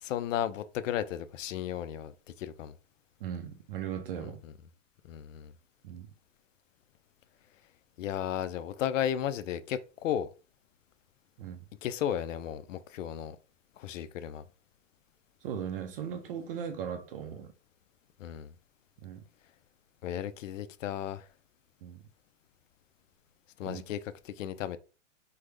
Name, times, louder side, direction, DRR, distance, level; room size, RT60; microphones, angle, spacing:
voice 1, 0.0-2.1 2.4-2.8 4.2-4.5 5.0-5.5 8.0-10.3 11.8-13.4 13.8-14.4 18.2-18.5 20.0-21.3 23.6-24.0 24.2-24.8, left 10 dB, 85° left, 0.5 m, -34 dB
voice 2, 3.2-4.4 5.8-6.1 11.4-11.6 15.4-17.5 19.0-19.2 21.8-22.0 23.6-23.8, right 8 dB, 50° right, 0.5 m, -38 dB
3.4 x 2.1 x 3.3 m
hypercardioid pair, 150°, 37 cm